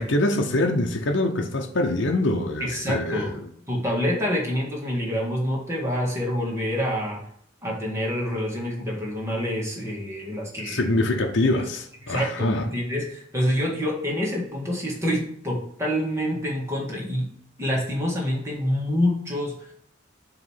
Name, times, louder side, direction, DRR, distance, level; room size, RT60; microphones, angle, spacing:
voice 1, 0.0-3.3 10.7-12.7, left 2 dB, 65° left, 0.8 m, -24 dB
voice 2, 2.6-3.4 3.7-7.2 7.6-10.8 11.4-11.6 12.1-17.3 17.6-19.5, equal, 15° right, 1.8 m, -27 dB
7.9 x 3.1 x 5.6 m
head